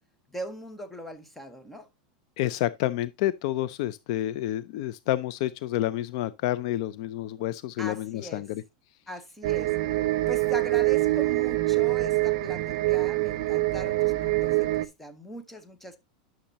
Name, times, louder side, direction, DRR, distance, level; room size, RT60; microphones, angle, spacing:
voice 1, 0.3-1.9 7.8-8.4 9.1-9.7 10.3-16.0, equal, 5° left, 0.8 m, -40 dB
voice 2, 2.4-8.6, left 14 dB, 45° left, 0.3 m, -29 dB
sound 1, 9.4-14.8, right 19 dB, 50° right, 0.5 m, -25 dB
10.0 x 6.3 x 2.7 m
supercardioid pair, 175°, 4 cm